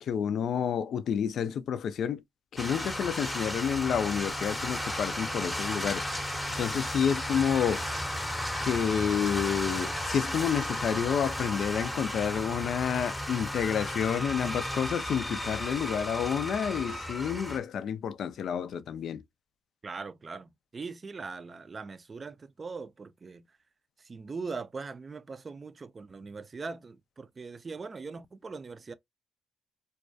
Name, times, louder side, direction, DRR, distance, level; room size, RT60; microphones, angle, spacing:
voice 1, 0.0-2.2 2.5-8.1 8.6-19.2, left 8 dB, 65° left, 0.3 m, -30 dB
sound 1, 2.6-17.6, left 1 dB, 5° left, 0.7 m, -34 dB
voice 2, 19.8-23.4 24.0-28.9, right 4 dB, 40° right, 0.3 m, -41 dB
2.3 x 2.2 x 2.5 m
supercardioid pair, 60°, 0 cm